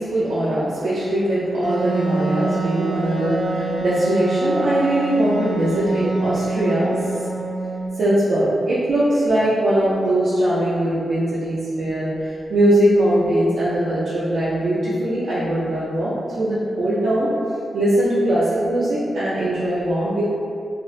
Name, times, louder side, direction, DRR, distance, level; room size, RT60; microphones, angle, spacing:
voice 1, 0.0-7.3 8.0-17.3 17.7-20.2, right 1 dB, 70° right, -10 dB, 0.4 m, -21 dB
Wind instrument woodwind instrument, 1.6-8.1, right 3 dB, 60° left, 0.4 m, -26 dB
2.4 x 2.0 x 2.5 m, 2.4 s
wide cardioid pair, 180°, 0 cm